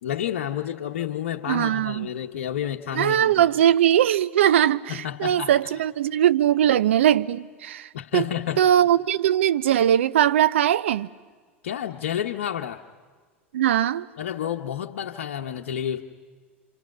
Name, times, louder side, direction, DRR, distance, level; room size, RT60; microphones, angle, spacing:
voice 1, 0.0-3.4 4.9-5.5 7.9-8.6 11.6-12.8 14.2-16.0, left 10 dB, 70° left, 1.1 m, -30 dB
voice 2, 1.5-2.1 2.9-8.2 8.6-11.1 13.5-14.1, right 11 dB, 70° right, 0.7 m, -20 dB
28.0 x 27.0 x 6.1 m
figure-of-eight pair, 85°, 7 cm